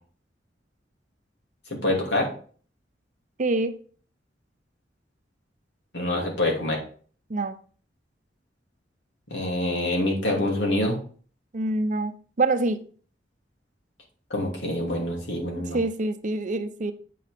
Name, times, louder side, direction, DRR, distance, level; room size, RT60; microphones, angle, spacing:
voice 1, 1.7-2.3 5.9-6.8 9.3-11.0 14.3-15.8, left 1 dB, 80° left, 2.7 m, -26 dB
voice 2, 3.4-3.7 7.3-7.5 11.5-12.8 15.7-16.9, right 2 dB, 45° right, 0.6 m, -25 dB
8.4 x 5.7 x 3.5 m
head